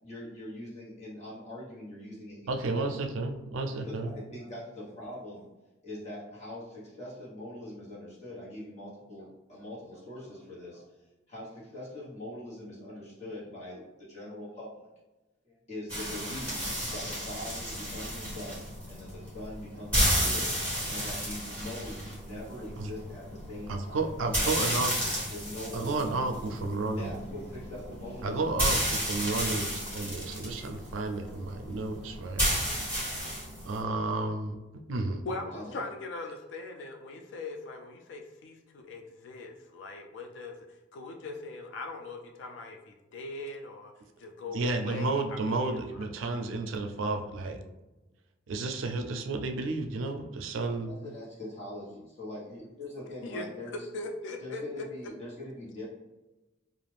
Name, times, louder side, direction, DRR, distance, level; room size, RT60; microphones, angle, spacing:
voice 1, 0.0-3.0 3.7-5.5 5.8-10.8 11.3-14.9 15.4-24.1 24.4-24.7 25.3-26.2 26.9-28.6 35.3-35.8 50.9-53.9 54.4-55.9, left 1 dB, 35° left, -8 dB, 1.2 m, -42 dB
voice 2, 2.5-4.1 22.8-22.9 23.7-24.9 25.7-27.1 28.2-32.5 33.7-34.6 34.9-35.2 44.5-47.6 48.5-50.9, right 3 dB, 85° right, 5 dB, 0.4 m, -32 dB
sound 1, 15.9-33.8, equal, 10° left, 1.4 m, -32 dB
voice 3, 35.3-43.9 44.2-45.8 53.2-53.5 53.9-54.9, left 3 dB, 65° left, 3 dB, 0.3 m, -40 dB
2.4 x 2.4 x 3.3 m, 1.1 s
head